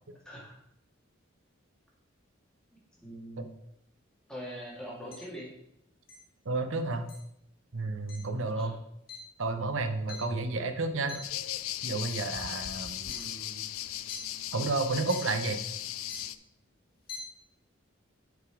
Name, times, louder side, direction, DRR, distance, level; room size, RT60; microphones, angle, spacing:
voice 1, 0.3-0.6 3.0-3.5 4.3-5.5 8.6-8.7 13.0-13.6, equal, 5° left, -5 dB, 2.1 m, -43 dB
sound 1, 5.1-5.2 6.1-6.2 7.1-7.2 8.1-8.2 9.1-9.2 9.6-10.7 11.1-11.4 12.0-12.3 13.1-13.2 13.9-14.2 15.1-15.2 16.0-16.3 16.9-17.2, left 5 dB, 45° left, 1.3 m, -44 dB
voice 2, 6.4-7.1 7.7-8.7 9.4-11.2 11.8-13.1 14.5-15.6, right 3 dB, 70° right, 8 dB, 0.8 m, -31 dB
sound 2, 11.2-16.4, left 13 dB, 80° left, 0.4 m, -37 dB
8.1 x 5.0 x 4.9 m, 0.79 s
head